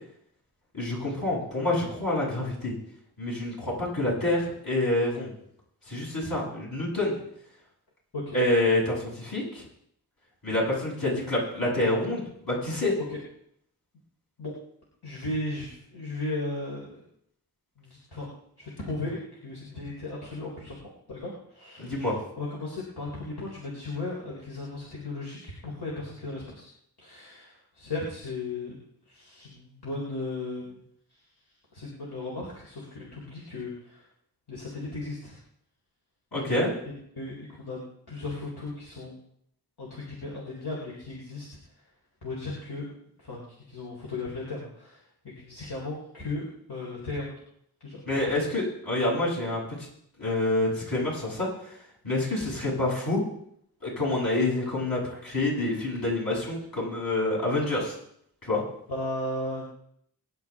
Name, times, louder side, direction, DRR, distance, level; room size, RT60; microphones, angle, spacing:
voice 1, 0.7-2.7 3.2-5.3 5.9-7.2 8.3-9.6 10.4-12.9 21.8-22.2 36.3-36.7 48.1-49.6 50.2-51.7 52.0-53.2 53.8-58.0 58.4-58.6, left 2 dB, 60° left, -5 dB, 7.7 m, -27 dB
voice 2, 15.0-17.0 17.8-18.3 18.6-20.8 21.1-22.1 22.4-26.7 27.0-28.8 29.1-30.7 31.7-34.0 34.5-35.4 37.1-37.8 38.1-39.1 39.8-41.5 42.2-42.9 43.2-45.0 45.4-47.3 47.8-48.5 58.9-59.6, left 2 dB, 75° left, -5 dB, 4.0 m, -36 dB
23.0 x 11.0 x 3.7 m, 0.71 s
wide cardioid pair, 65°, 39 cm